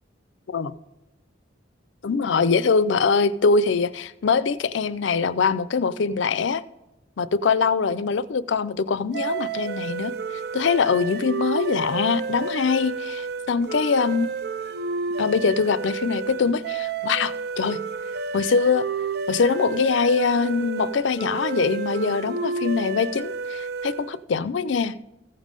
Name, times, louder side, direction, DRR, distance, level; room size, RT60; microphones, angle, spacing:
voice 1, 2.0-6.6 7.2-10.1 10.5-14.3 15.2-17.8 18.3-18.9 19.3-24.9, left 5 dB, 75° left, 16 dB, 0.5 m, -23 dB
sound 1, 9.1-24.2, right 4 dB, 55° right, 0.5 m, -31 dB
15.0 x 5.4 x 5.2 m, 0.95 s
head